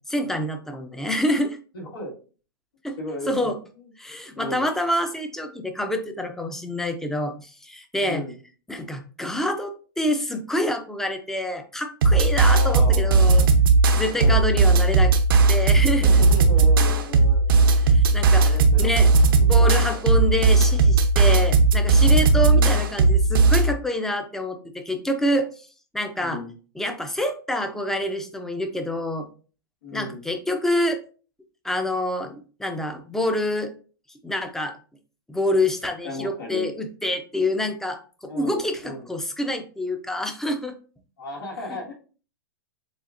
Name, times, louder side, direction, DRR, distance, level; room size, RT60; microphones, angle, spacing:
voice 1, 0.1-1.6 2.8-3.0 3.3-3.6 4.0-8.2 8.7-13.5 13.9-15.1 15.5-16.2 17.8-19.1 19.4-25.7 25.9-26.4 26.8-29.3 29.9-31.0 31.6-33.7 34.2-34.8 35.3-40.7 41.7-41.8, left 1 dB, 5° left, 6 dB, 0.5 m, -27 dB
voice 2, 1.7-2.1 3.0-3.5 4.3-4.7 8.0-8.3 12.4-13.2 14.1-14.4 15.9-17.5 18.3-19.1 19.4-19.6 22.5-22.8 26.2-26.5 29.8-30.2 36.0-36.7 38.3-39.1 41.2-41.9, left 1 dB, 85° left, -3 dB, 1.9 m, -35 dB
sound 1, 12.0-23.7, right 3 dB, 75° right, 0.7 m, -17 dB
7.0 x 2.4 x 2.5 m, 0.38 s
hypercardioid pair, 135°, 12 cm